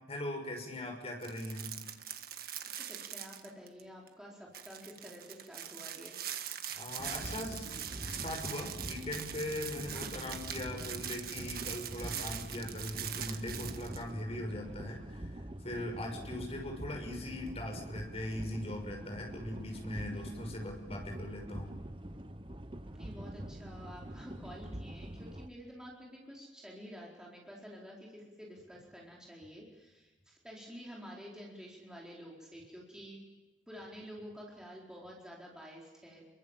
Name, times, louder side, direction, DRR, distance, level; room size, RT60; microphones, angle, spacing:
voice 1, 0.1-1.7 6.7-7.6 7.9-21.8, left 1 dB, 30° left, 3 dB, 6.1 m, -40 dB
sound 1, 1.2-3.8 4.1-4.2 4.5-14.0, right 10 dB, 50° right, 1.6 m, -42 dB
voice 2, 2.8-6.2 9.9-10.1 19.9-20.3 22.9-33.2 33.7-36.2, equal, 5° right, -3 dB, 4.5 m, -50 dB
sound 2, 7.0-25.5, right 1 dB, 25° right, 1.1 m, -45 dB
29.5 x 23.5 x 7.5 m, 1.2 s
head